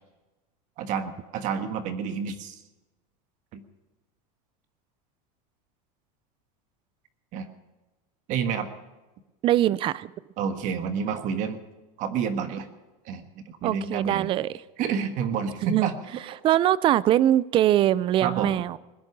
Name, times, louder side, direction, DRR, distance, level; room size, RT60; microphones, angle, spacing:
voice 1, 0.8-2.6 3.5-3.6 7.3-7.5 8.3-8.7 10.4-11.6 12.0-12.7 13.0-14.3 14.8-15.9 18.2-18.6, right 7 dB, 45° right, 8 dB, 1.5 m, -29 dB
voice 2, 9.4-10.1 13.6-14.5 15.6-15.9 16.4-18.8, right 12 dB, 30° right, 20 dB, 0.4 m, -22 dB
20.5 x 10.5 x 6.0 m, 1.1 s
supercardioid pair, 150°, 19 cm